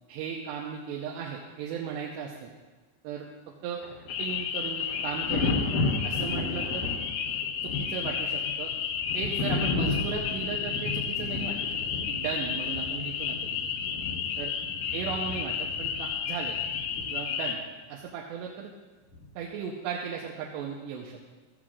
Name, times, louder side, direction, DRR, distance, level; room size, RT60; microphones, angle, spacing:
voice 1, 0.1-2.5 3.0-3.3 3.6-3.8 4.2-5.5 6.0-6.9 7.6-8.7 9.1-11.8 12.1-13.7 14.4-14.5 14.9-16.6 17.1-17.6 17.9-18.7 19.4-21.2, right 7 dB, 85° right, -1 dB, 3.0 m, -36 dB
Thunder, 3.8-17.5 19.1-19.3, left 3 dB, 65° left, 2.3 m, -34 dB
sound 1, 4.1-17.5, left 7 dB, 80° left, 2.8 m, -32 dB
16.0 x 13.5 x 2.5 m, 1.3 s
omnidirectional pair, 4.8 m